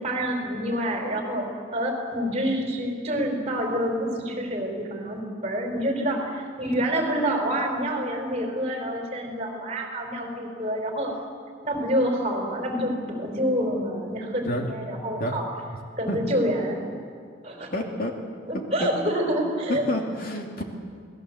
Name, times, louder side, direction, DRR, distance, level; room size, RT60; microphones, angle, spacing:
voice 1, 0.0-11.1 11.6-15.4 16.0-16.8 17.4-17.7 18.5-19.8, equal, 30° right, 2 dB, 4.6 m, -27 dB
voice 2, 17.7-18.1 18.8-18.9 19.7-20.6, left 1 dB, 50° left, 1 dB, 2.6 m, -28 dB
28.0 x 19.0 x 8.0 m, 2.2 s
head